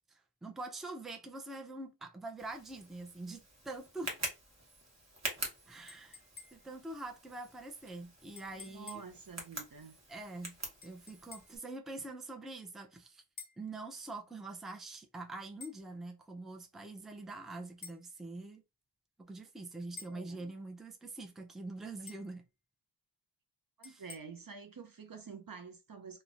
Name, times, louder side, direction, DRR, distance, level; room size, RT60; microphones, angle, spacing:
voice 1, 0.1-4.2 5.7-6.2 6.5-9.0 10.1-10.6 10.8-13.2 13.6-18.6 19.2-22.4 23.8-24.0, right 2 dB, ahead, 0.4 m, -45 dB
Tick, 2.4-11.6, right 2 dB, 40° right, 1.0 m, -45 dB
sound 1, 5.9-6.8 8.4-9.2 10.8-11.6 13.4-13.7 15.6-15.8 17.8-18.1 20.0-20.3 22.1-22.4 23.8-24.2, left 5 dB, 55° left, 0.6 m, -51 dB
voice 2, 8.5-9.9 20.1-20.4 23.8-26.2, right 6 dB, 55° right, 0.5 m, -48 dB
3.0 x 2.1 x 2.4 m
wide cardioid pair, 50°, 42 cm